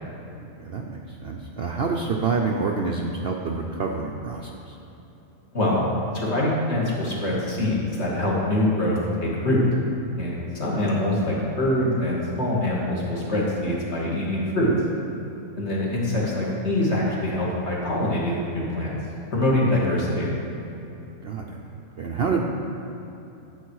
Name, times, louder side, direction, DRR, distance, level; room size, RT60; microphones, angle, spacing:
voice 1, 0.4-4.8 10.2-10.5 21.2-22.4, right 4 dB, 55° right, 0 dB, 0.8 m, -28 dB
voice 2, 5.5-5.8 6.1-9.6 10.2-14.7 15.5-19.0 19.3-20.3, left 1 dB, 50° left, -5 dB, 2.4 m, -24 dB
12.5 x 8.0 x 4.7 m, 3.0 s
omnidirectional pair, 1.5 m